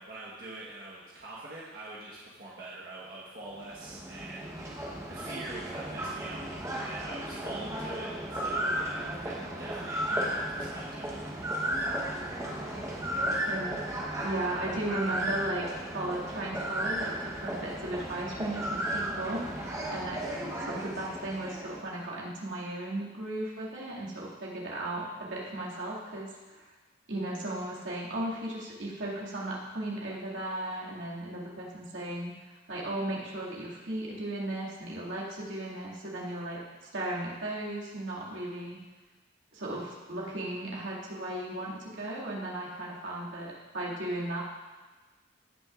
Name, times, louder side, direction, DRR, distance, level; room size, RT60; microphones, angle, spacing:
voice 1, 0.0-6.4 6.7-11.3, right 2 dB, 50° right, -6 dB, 1.3 m, -44 dB
sound 1, 3.5-21.9, right 1 dB, 15° right, 1.0 m, -34 dB
voice 2, 13.2-13.8 14.2-15.7 15.9-19.6 19.9-20.2 20.6-26.7 27.1-38.8 39.5-44.4, right 1 dB, 80° right, -5 dB, 2.2 m, -36 dB
17.0 x 6.2 x 2.5 m, 1.3 s
head